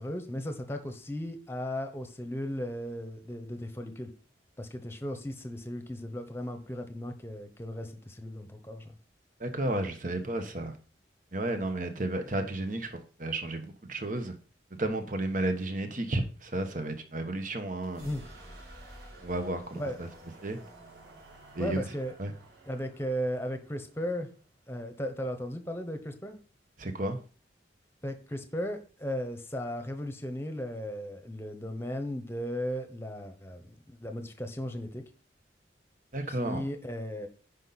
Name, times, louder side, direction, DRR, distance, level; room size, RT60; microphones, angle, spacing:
voice 1, 0.0-4.1 4.6-8.9 18.0-18.2 19.8-20.0 21.6-22.1 22.7-24.3 24.7-26.4 28.0-35.0 36.3-37.3, equal, 15° left, 1.1 m, -36 dB
voice 2, 9.4-10.7 11.3-14.3 14.7-18.1 19.2-20.1 20.4-20.6 21.5-21.9 22.2-22.3 26.8-27.2 36.1-36.6, right 1 dB, 45° right, 1.2 m, -32 dB
sound 1, 17.8-25.5, right 1 dB, 75° right, 4.5 m, -52 dB
10.0 x 5.3 x 4.2 m
head